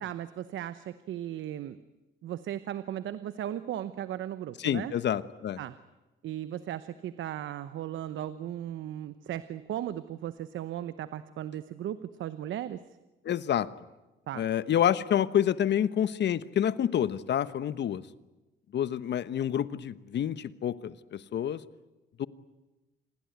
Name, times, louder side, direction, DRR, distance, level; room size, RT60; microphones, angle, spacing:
voice 1, 0.0-1.8 2.2-4.9 5.6-5.8 6.2-12.8 14.3-14.4, right 11 dB, 75° right, 13 dB, 1.0 m, -36 dB
voice 2, 4.6-5.6 13.2-13.7 14.3-18.0 18.7-21.6 22.2-22.3, left 10 dB, 60° left, 15 dB, 1.1 m, -28 dB
27.5 x 20.0 x 9.4 m, 1.1 s
cardioid pair, 90°, 20 cm